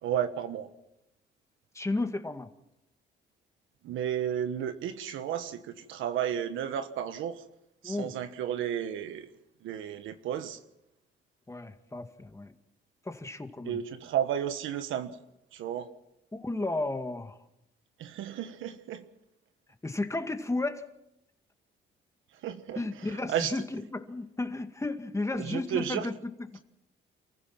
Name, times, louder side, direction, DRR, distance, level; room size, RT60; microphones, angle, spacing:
voice 1, 0.0-0.7 3.8-7.4 7.8-9.3 9.6-10.6 13.6-15.2 15.5-15.9 18.0-19.0 22.4-23.5 25.4-26.1, right 9 dB, 85° right, 9 dB, 1.4 m, -33 dB
voice 2, 1.7-2.5 7.8-8.1 11.5-12.5 13.0-13.8 16.3-17.4 19.8-20.9 22.8-26.1 26.5-26.6, left 2 dB, 15° left, 7 dB, 2.1 m, -33 dB
28.5 x 15.5 x 6.0 m, 0.86 s
cardioid pair, 90°, 20 cm